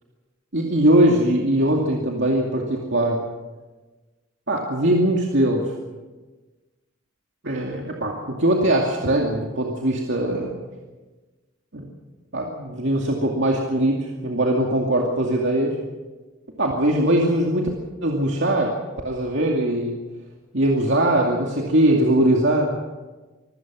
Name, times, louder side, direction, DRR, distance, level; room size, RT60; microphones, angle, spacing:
voice 1, 0.5-3.2 4.5-5.6 7.4-10.6 11.7-11.9 12.3-15.8 16.6-17.7 18.0-18.7 19.0-20.0 20.5-22.7, right 1 dB, 60° right, -1 dB, 2.4 m, -21 dB
25.5 x 16.5 x 6.3 m, 1.2 s
head